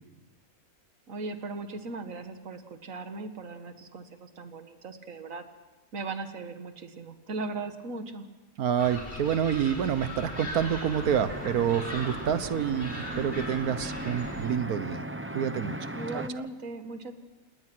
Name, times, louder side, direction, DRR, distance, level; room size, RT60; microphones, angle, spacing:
voice 1, 1.1-5.5 5.9-8.3 15.9-17.1, right 3 dB, 65° right, 8 dB, 1.9 m, -38 dB
voice 2, 8.6-15.1 15.3-15.8 16.1-16.2, right 8 dB, 80° right, 13 dB, 1.5 m, -28 dB
sound 1, 8.8-14.5, left 1 dB, 35° left, 5.4 m, -39 dB
sound 2, 11.0-16.3, right 1 dB, 10° right, 0.8 m, -38 dB
28.0 x 20.0 x 6.1 m, 1.2 s
omnidirectional pair, 1.5 m